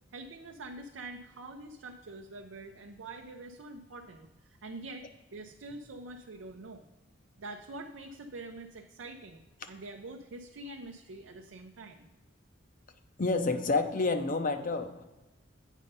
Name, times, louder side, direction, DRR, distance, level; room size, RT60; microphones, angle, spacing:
voice 1, 0.1-6.8 7.4-12.1, right 2 dB, 85° right, 3 dB, 0.6 m, -45 dB
voice 2, 13.2-15.0, left 3 dB, 45° left, 8 dB, 0.6 m, -29 dB
8.2 x 5.4 x 5.3 m, 1.1 s
head